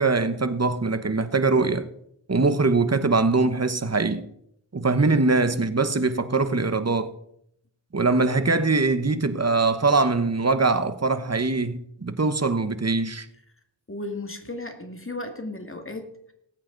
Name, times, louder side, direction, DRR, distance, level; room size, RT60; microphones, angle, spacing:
voice 1, 0.0-1.9 2.3-4.2 4.7-7.1 7.9-13.3, right 3 dB, 35° right, 1.1 m, -22 dB
voice 2, 13.9-16.3, left 2 dB, 30° left, 2.2 m, -35 dB
19.5 x 8.6 x 4.0 m
wide cardioid pair, 50°, 45 cm